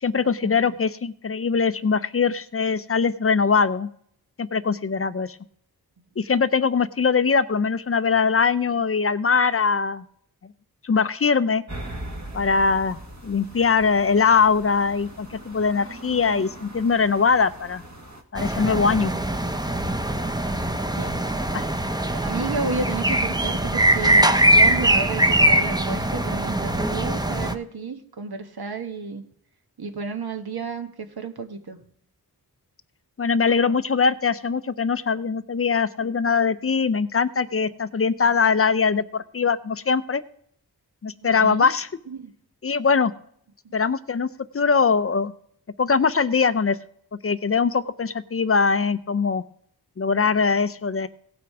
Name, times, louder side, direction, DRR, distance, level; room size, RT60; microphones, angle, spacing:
voice 1, 0.0-3.9 4.4-5.4 6.2-10.0 10.8-11.6 12.3-17.8 18.3-19.1 21.5-21.6 33.2-40.2 41.0-41.9 42.6-43.1 43.7-44.3 44.5-45.3 45.8-46.8 47.2-49.4 50.0-51.1, left 5 dB, 35° left, 14 dB, 0.5 m, -22 dB
sound 1, 11.7-18.2, right 1 dB, 45° right, 1.7 m, -40 dB
sound 2, 18.3-27.5, right 1 dB, 10° right, 0.8 m, -22 dB
voice 2, 22.1-29.2 29.8-31.8 41.2-41.6 42.1-42.3 43.6-43.7, right 4 dB, 65° right, 6 dB, 1.4 m, -32 dB
17.0 x 6.0 x 4.8 m, 0.66 s
wide cardioid pair, 60°, 40 cm